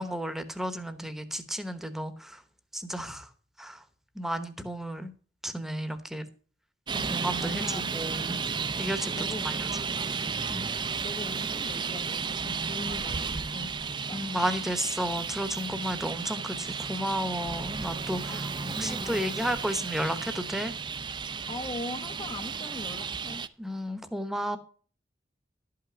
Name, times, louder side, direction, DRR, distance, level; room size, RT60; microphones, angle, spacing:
voice 1, 0.0-2.4 2.7-3.3 3.6-3.8 4.1-5.1 5.4-6.3 7.0-8.4 8.8-9.1 9.4-9.6 10.5-10.7 14.1-18.4 18.8-20.7 23.6-24.6, equal, ahead, 0.9 m, -32 dB
Traffic noise roadway noise, 6.9-23.5, right 5 dB, 25° right, 0.4 m, -33 dB
voice 2, 7.4-8.1 9.1-10.0 10.6-14.3 18.3-19.4 21.5-23.4, left 2 dB, 30° left, 0.7 m, -41 dB
12.0 x 5.8 x 6.2 m
head